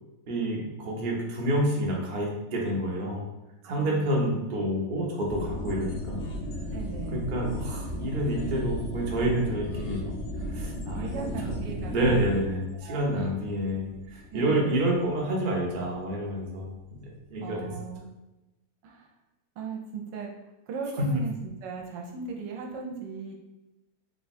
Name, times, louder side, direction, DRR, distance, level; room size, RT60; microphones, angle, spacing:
voice 1, 0.3-3.3 3.7-6.2 7.1-10.1 10.4-11.6 11.9-16.7 17.0-17.7 21.0-21.1, right 1 dB, 50° right, -2 dB, 0.6 m, -28 dB
voice 2, 3.6-4.2 6.7-7.3 10.9-12.3 12.8-13.3 14.3-14.8 17.4-18.1 18.8-19.1 19.6-20.3 20.7-23.3, right 5 dB, 75° right, 0 dB, 1.3 m, -38 dB
sound 1, 5.3-16.2 16.4-16.5, left 1 dB, 75° left, 1.4 m, -36 dB
3.7 x 2.3 x 4.1 m, 0.99 s
omnidirectional pair, 2.0 m